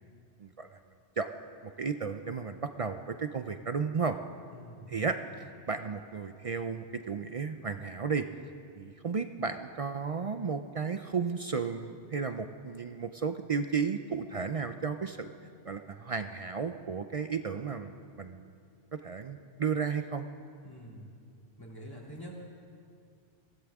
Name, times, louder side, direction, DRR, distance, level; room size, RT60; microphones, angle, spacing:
voice 1, 0.4-0.8 1.2-1.3 1.6-4.2 4.9-8.3 8.7-15.3 15.6-18.5 19.0-20.3, right 5 dB, 55° right, 8 dB, 0.4 m, -34 dB
voice 2, 4.5-5.5 20.6-21.1 21.6-22.3, equal, 20° left, -4 dB, 2.7 m, -47 dB
23.0 x 16.5 x 3.6 m, 2.3 s
omnidirectional pair, 1.2 m